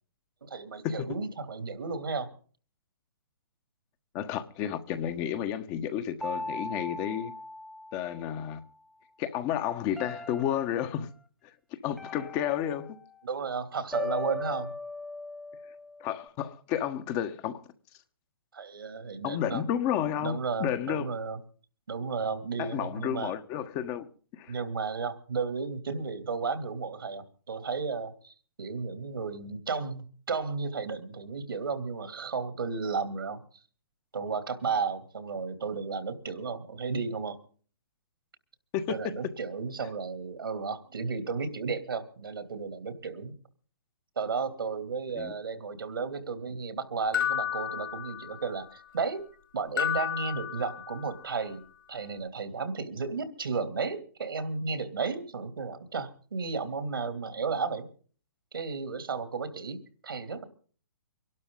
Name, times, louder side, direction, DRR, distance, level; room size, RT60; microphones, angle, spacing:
voice 1, 0.4-2.3 13.2-14.7 18.5-19.6 20.2-21.4 21.9-23.3 24.5-33.4 34.1-37.4 38.9-43.3 44.2-49.3 49.5-51.6 51.9-57.9 58.5-60.4, right 5 dB, 75° right, 2.9 m, -33 dB
voice 2, 4.1-7.3 7.9-8.6 9.2-11.1 11.8-13.0 16.0-17.6 19.2-21.1 22.6-24.1 24.3-24.5 38.7-39.0 45.2-45.3, left 10 dB, 30° left, 1.3 m, -31 dB
sound 1, 6.2-8.6 10.0-11.0 12.0-13.3 13.9-16.3, left 2 dB, ahead, 1.1 m, -39 dB
sound 2, 47.1-48.6 49.8-51.2, left 10 dB, 70° left, 4.6 m, -32 dB
24.0 x 12.0 x 3.9 m
hypercardioid pair, 130°, 12 cm